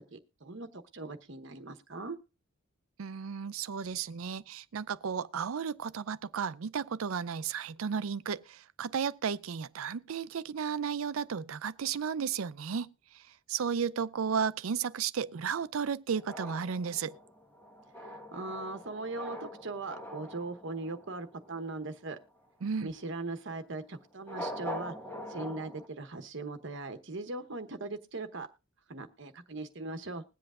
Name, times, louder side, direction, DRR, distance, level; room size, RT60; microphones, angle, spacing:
voice 1, 0.1-2.2 18.0-22.2 22.8-24.9 25.3-28.5 28.9-30.2, right 3 dB, 60° right, 1.0 m, -40 dB
voice 2, 3.0-17.2 22.6-22.9, right 6 dB, 80° right, 0.5 m, -34 dB
sound 1, 16.1-21.8 24.2-25.9, equal, 10° left, 1.3 m, -43 dB
21.0 x 7.8 x 2.4 m
head